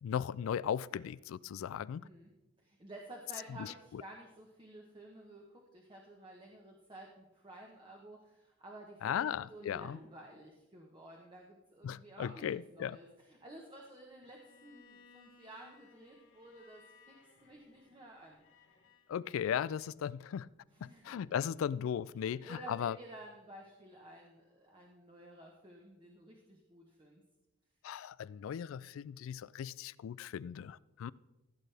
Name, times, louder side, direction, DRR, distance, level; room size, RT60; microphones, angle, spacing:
voice 1, 0.0-2.1 3.5-4.0 9.0-10.0 11.8-13.0 19.1-20.5 20.8-23.0 27.8-31.1, left 8 dB, 85° left, 0.3 m, -37 dB
voice 2, 2.0-2.3 2.6-16.8 17.1-17.2 17.4-18.4 20.7-21.5 22.1-27.2, right 1 dB, 25° right, 1.1 m, -53 dB
Bowed string instrument, 14.2-19.1, left 5 dB, 70° left, 1.5 m, -63 dB
15.5 x 8.3 x 3.4 m
head